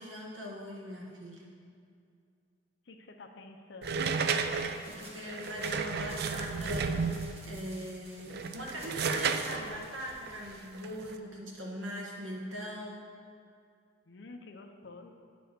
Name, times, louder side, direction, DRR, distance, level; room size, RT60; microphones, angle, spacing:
voice 1, 0.0-1.5 4.9-7.1 7.5-13.0, equal, 75° right, -2 dB, 1.5 m, -41 dB
voice 2, 2.9-4.3 14.1-15.1, left 3 dB, 60° left, 5 dB, 0.6 m, -49 dB
sound 1, 3.8-7.5 8.2-11.2, right 5 dB, 55° right, 0.3 m, -33 dB
sound 2, 3.9-10.9, right 1 dB, 30° right, 1.0 m, -54 dB
9.4 x 3.4 x 6.5 m, 2.3 s
head